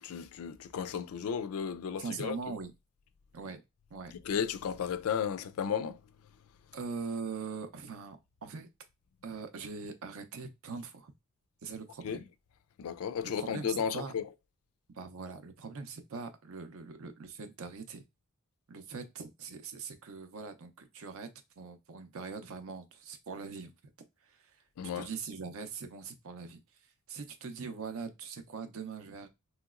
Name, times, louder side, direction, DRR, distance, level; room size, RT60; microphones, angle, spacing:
voice 1, 0.0-2.4 4.2-6.0 12.0-12.2 12.8-14.2 24.8-25.1, left 7 dB, 65° left, 0.3 m, -34 dB
voice 2, 2.0-2.7 3.3-3.6 3.9-4.1 6.7-8.7 9.2-11.1 11.6-12.3 13.4-14.1 14.9-18.0 18.7-21.3 21.6-23.7 24.2-24.6 24.9-26.6 27.1-29.3, right 5 dB, 65° right, 0.6 m, -42 dB
3.0 x 2.9 x 2.4 m
head